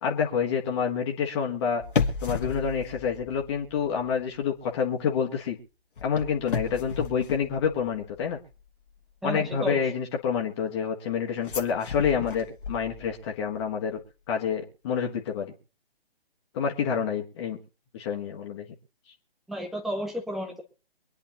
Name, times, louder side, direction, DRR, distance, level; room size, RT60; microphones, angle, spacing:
voice 1, 0.0-1.8 2.2-5.6 6.0-8.4 9.2-14.0 14.3-15.5 16.5-17.6 17.9-18.7, left 7 dB, 25° left, 1 dB, 1.7 m, -28 dB
sound 1, 1.8-4.1 4.4-4.7 6.0-8.2 11.4-13.3 13.6-13.7, left 5 dB, 55° left, 1.7 m, -33 dB
voice 2, 9.2-9.8 19.5-20.6, equal, ahead, 2 dB, 0.6 m, -32 dB
24.0 x 10.0 x 3.0 m, 0.35 s
figure-of-eight pair, 145°, 31 cm